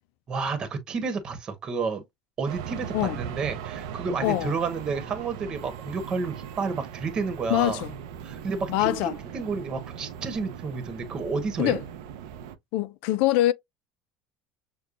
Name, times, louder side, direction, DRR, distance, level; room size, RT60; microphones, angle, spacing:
voice 1, 0.3-2.0 2.4-7.8 8.2-11.8, right 4 dB, 35° right, 1.1 m, -31 dB
sound 1, 2.5-12.6, right 8 dB, 85° right, 0.5 m, -39 dB
voice 2, 4.2-4.5 7.5-7.9 8.7-9.1 11.6-11.8 12.7-13.5, left 15 dB, 70° left, 0.3 m, -24 dB
6.5 x 2.2 x 2.4 m
supercardioid pair, 110°, 2 cm